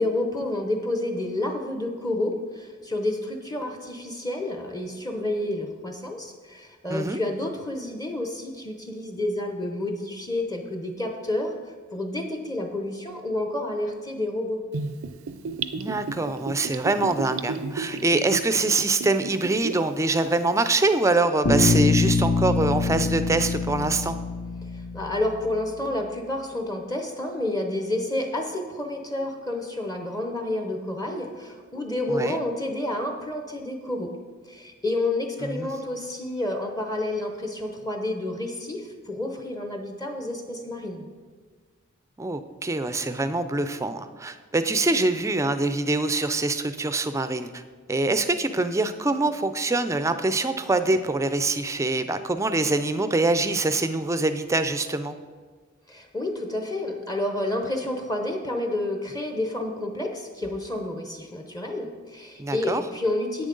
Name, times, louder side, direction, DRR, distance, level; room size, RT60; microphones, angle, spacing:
voice 1, 0.0-11.5 11.9-14.6 24.7-34.1 34.5-41.1 55.9-63.5, left 1 dB, 20° left, 3 dB, 0.7 m, -29 dB
Gurgling / Bathtub (filling or washing), 14.7-19.9 20.2-20.3, right 4 dB, 80° right, 0.5 m, -32 dB
voice 2, 15.7-24.2 32.1-32.4 35.4-35.7 42.2-47.6 47.9-55.1 62.4-62.8, right 2 dB, 15° right, 10 dB, 0.4 m, -24 dB
Bass guitar, 21.4-25.5, left 3 dB, 65° left, 1.4 m, -24 dB
10.0 x 8.3 x 3.8 m, 1.5 s
head